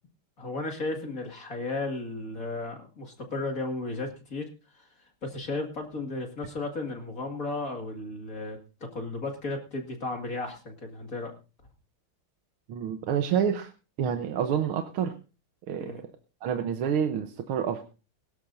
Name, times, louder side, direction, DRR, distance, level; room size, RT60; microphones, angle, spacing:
voice 1, 0.4-4.5 4.7-8.6 8.9-11.3 15.8-16.0, left 2 dB, 40° left, 4 dB, 2.4 m, -34 dB
voice 2, 12.7-13.7 14.0-15.1 15.7-16.0 16.4-17.8, right 8 dB, 85° right, 7 dB, 1.8 m, -28 dB
22.0 x 13.0 x 2.6 m, 0.33 s
omnidirectional pair, 2.3 m